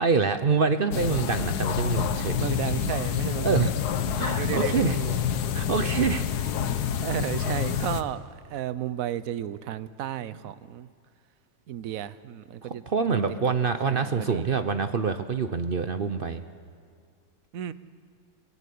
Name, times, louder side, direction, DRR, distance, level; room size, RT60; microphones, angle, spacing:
voice 1, 0.0-2.4 3.4-3.7 4.2-5.0 5.5-6.3 12.6-16.4, right 5 dB, 50° right, 9 dB, 0.7 m, -26 dB
sound 1, 0.9-8.0, left 9 dB, 75° left, 1.4 m, -27 dB
voice 2, 2.3-3.7 4.3-5.2 7.0-10.9 11.7-13.2 13.9-14.5 17.5-17.7, right 11 dB, 65° right, 15 dB, 1.1 m, -33 dB
24.0 x 16.5 x 8.5 m, 2.1 s
omnidirectional pair, 1.7 m